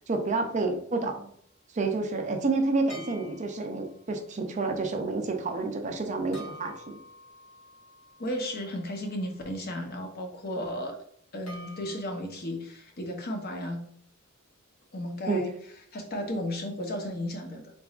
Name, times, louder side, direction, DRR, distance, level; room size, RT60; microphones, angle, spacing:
voice 1, 0.1-1.3 1.7-7.0 15.3-15.4, right 3 dB, 35° right, 4 dB, 0.5 m, -29 dB
sound 1, 2.9-3.9 6.3-9.4 11.5-12.4, equal, 85° left, 1.4 m, -48 dB
voice 2, 8.2-11.0 11.3-13.8 14.9-15.5 15.9-17.6, left 1 dB, 45° left, 3 dB, 0.7 m, -34 dB
4.0 x 3.6 x 2.4 m, 0.63 s
head